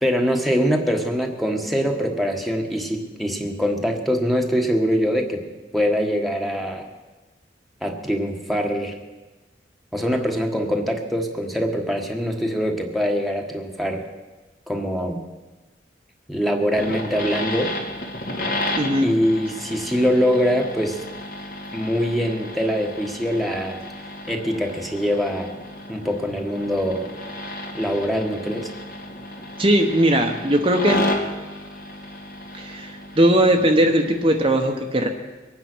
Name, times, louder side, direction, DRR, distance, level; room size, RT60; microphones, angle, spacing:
voice 1, 0.0-5.4 5.7-6.8 7.8-8.9 9.9-14.0 14.7-15.2 16.3-17.7 19.0-21.0 21.7-23.8 24.3-25.5 25.9-27.0 27.7-28.7, equal, ahead, 2 dB, 1.4 m, -23 dB
sound 1, 16.8-34.4, left 1 dB, 55° left, 2.4 m, -32 dB
voice 2, 18.8-19.1 29.6-31.1 32.5-35.1, right 1 dB, 30° right, 2 dB, 1.0 m, -19 dB
23.0 x 9.3 x 6.2 m, 1.2 s
head